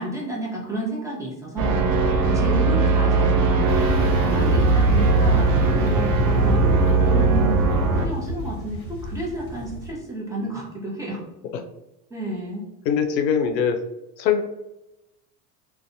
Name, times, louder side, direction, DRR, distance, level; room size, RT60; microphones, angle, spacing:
voice 1, 0.0-1.8 2.2-3.6 4.1-6.8 7.0-7.7 8.0-11.2 12.1-12.6, right 1 dB, 5° right, -4 dB, 0.6 m, -31 dB
sound 1, 1.6-8.1, right 4 dB, 45° right, 0.5 m, -19 dB
sound 2, 3.7-9.9, left 1 dB, 25° left, 0.9 m, -27 dB
voice 2, 12.9-13.8 14.2-14.4, left 7 dB, 85° left, 6 dB, 0.6 m, -21 dB
2.5 x 2.2 x 2.6 m, 0.91 s
hypercardioid pair, 80°, 49 cm